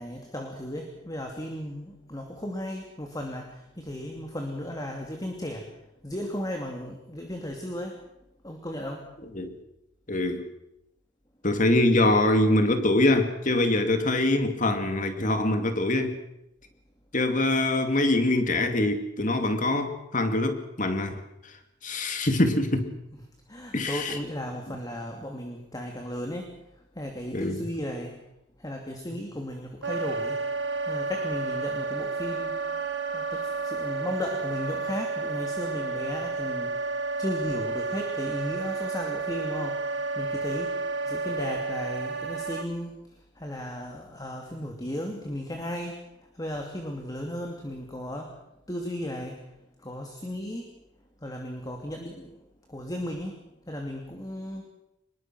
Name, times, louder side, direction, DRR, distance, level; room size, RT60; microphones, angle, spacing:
voice 1, 0.0-5.7 6.0-8.0 8.4-9.1 23.5-26.5 26.9-28.1 28.6-30.4 30.9-32.7 33.1-36.9 37.2-40.8 41.0-48.3 48.7-49.4 49.8-50.7 51.2-52.4 52.7-53.4 53.7-54.7, left 1 dB, 20° left, 2 dB, 2.7 m, -35 dB
voice 2, 10.1-10.5 11.4-16.2 17.1-21.2 21.8-22.9 23.7-24.1 27.3-27.6, left 2 dB, 40° left, 7 dB, 2.5 m, -24 dB
Wind instrument woodwind instrument, 29.8-42.7, right 4 dB, 65° right, 1.9 m, -31 dB
25.0 x 21.5 x 6.2 m, 0.85 s
head